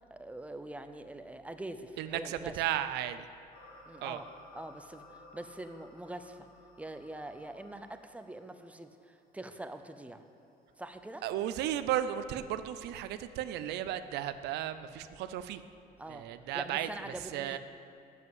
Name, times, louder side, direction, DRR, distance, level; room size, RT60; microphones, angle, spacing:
voice 1, 0.1-2.6 3.9-6.5 6.8-10.2 10.8-11.2 16.0-16.3 16.5-17.6, right 1 dB, 10° right, 8 dB, 0.6 m, -44 dB
voice 2, 2.0-3.3 4.0-4.2 11.2-15.6 16.1-16.9 17.3-17.6, right 11 dB, 85° right, 12 dB, 0.5 m, -34 dB
sound 1, 3.5-12.1, left 2 dB, 65° left, 1.9 m, -58 dB
8.1 x 7.4 x 7.8 m, 2.6 s
cardioid pair, 110°, 17 cm